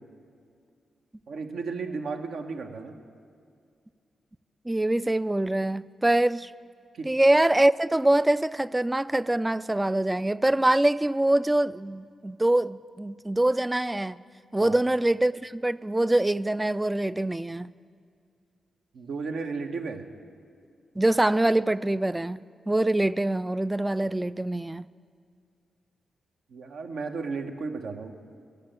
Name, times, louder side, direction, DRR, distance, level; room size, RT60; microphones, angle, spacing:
voice 1, 1.3-3.0 6.9-7.1 14.6-14.8 18.9-20.0 26.5-28.1, right 4 dB, 75° right, 0.9 m, -34 dB
voice 2, 4.7-6.5 7.0-14.2 14.5-17.7 21.0-24.9, right 1 dB, 15° right, 0.3 m, -24 dB
11.5 x 6.8 x 8.8 m
supercardioid pair, 45°, 0 cm